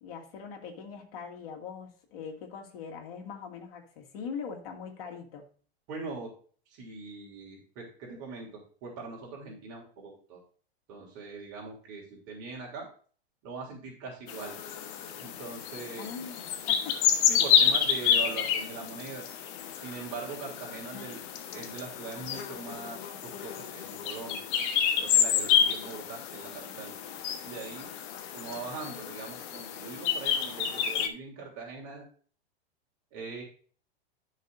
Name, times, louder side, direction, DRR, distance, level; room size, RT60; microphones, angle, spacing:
voice 1, 0.0-5.5 16.0-17.0 20.9-21.1, left 6 dB, 65° left, 2 dB, 2.4 m, -42 dB
voice 2, 5.9-6.3 6.7-10.4 10.9-12.9 13.4-14.5 15.2-16.1 17.3-19.3 19.7-21.2 21.5-24.5 25.0-26.9 27.4-27.9 28.3-32.1 33.1-33.4, right 4 dB, 45° right, -1 dB, 3.3 m, -41 dB
sound 1, 14.3-31.1, left 8 dB, 50° left, 1.3 m, -29 dB
11.5 x 6.4 x 2.7 m, 0.43 s
hypercardioid pair, 120°, 32 cm